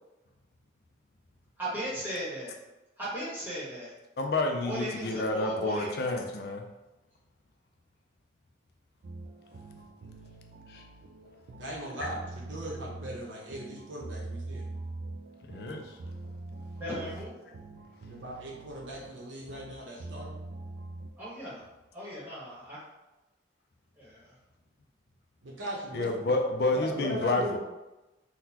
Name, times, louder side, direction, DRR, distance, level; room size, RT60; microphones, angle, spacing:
voice 1, 1.6-2.5 3.0-3.9 4.6-6.0 16.8-17.3 21.2-21.6 21.9-22.8 24.0-24.3, equal, 10° right, -9 dB, 1.1 m, -37 dB
voice 2, 4.2-6.7 10.7-10.8 15.5-16.0 25.9-27.6, left 2 dB, 55° left, 4 dB, 0.4 m, -29 dB
sound 1, 9.0-21.1, right 2 dB, 65° right, 0.3 m, -43 dB
voice 3, 11.6-14.7 18.1-20.4 25.4-26.1 26.7-27.6, equal, 85° right, -3 dB, 0.8 m, -39 dB
3.8 x 2.2 x 2.8 m, 1.0 s
head